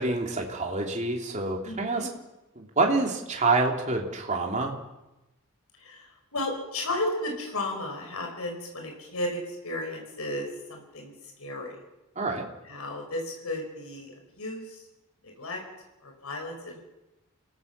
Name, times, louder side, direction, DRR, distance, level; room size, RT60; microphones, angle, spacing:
voice 1, 0.0-2.1 2.5-4.8 12.1-12.5, right 3 dB, 35° right, 1 dB, 3.2 m, -27 dB
voice 2, 1.6-2.1 5.7-11.8 12.6-14.9 15.2-15.6 16.0-16.8, left 1 dB, 90° left, 2 dB, 5.2 m, -34 dB
29.0 x 17.5 x 6.9 m, 0.98 s
head